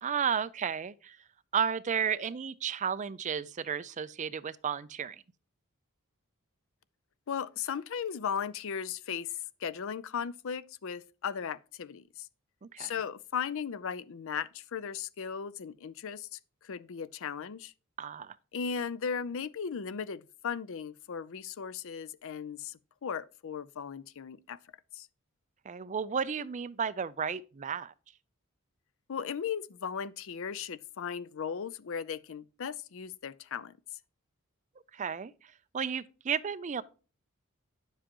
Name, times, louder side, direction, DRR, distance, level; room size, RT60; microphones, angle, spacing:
voice 1, 0.0-1.2 1.5-5.2 12.6-12.9 18.0-18.3 25.7-27.9 34.9-35.3 35.7-36.8, right 7 dB, 35° right, 0.4 m, -33 dB
voice 2, 7.3-9.3 9.6-12.3 12.8-17.7 18.5-24.6 24.9-25.1 29.1-33.8, left 7 dB, 65° left, 0.5 m, -37 dB
9.9 x 7.4 x 2.9 m
head